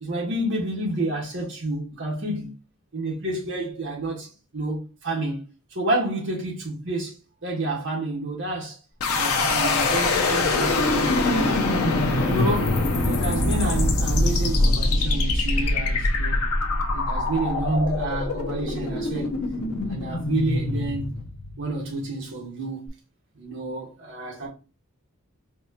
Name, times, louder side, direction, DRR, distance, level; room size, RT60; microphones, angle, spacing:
voice 1, 0.0-2.5 2.9-5.4 5.7-7.2 7.4-8.8 9.1-11.7 12.3-16.4 16.9-19.4 19.9-21.1 21.6-22.9 23.3-24.5, right 2 dB, 55° right, 1.4 m, -29 dB
sound 1, 9.0-21.9, left 2 dB, 80° left, 0.7 m, -23 dB
4.5 x 2.5 x 2.8 m
head